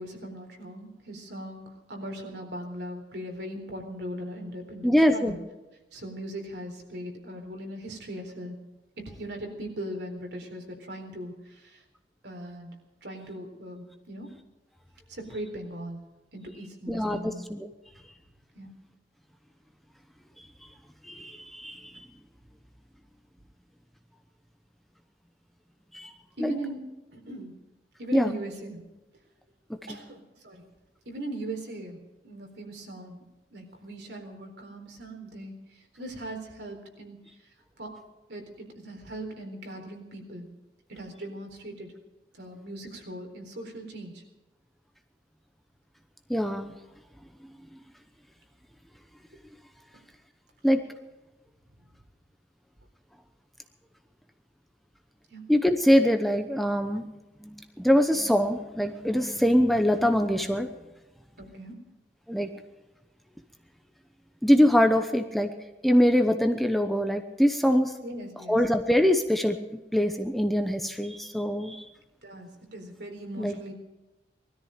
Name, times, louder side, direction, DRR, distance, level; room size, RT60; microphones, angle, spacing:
voice 1, 0.0-5.4 5.9-8.6 9.0-11.8 12.2-12.7 13.0-14.3 15.1-16.0 16.3-17.4 18.5-18.8 26.4-26.8 27.1-27.7 28.0-28.8 29.9-30.6 31.1-33.2 33.5-35.5 36.0-37.2 37.8-37.9 38.3-40.5 40.9-41.9 42.4-44.2 55.3-55.4 61.4-61.8 68.0-68.6 72.2-73.7, right 1 dB, 65° right, 3 dB, 4.0 m, -39 dB
voice 2, 4.8-5.4 16.9-17.7 21.0-21.8 25.9-26.1 26.4-26.5 28.1-28.3 29.9-30.0 46.3-46.7 50.6-50.8 55.5-57.1 57.4-60.7 62.3-62.5 64.4-65.5 65.8-67.9 68.5-69.6 69.9-71.8 73.4-73.6, equal, ahead, 6 dB, 0.9 m, -23 dB
20.5 x 13.5 x 5.1 m, 1.0 s
head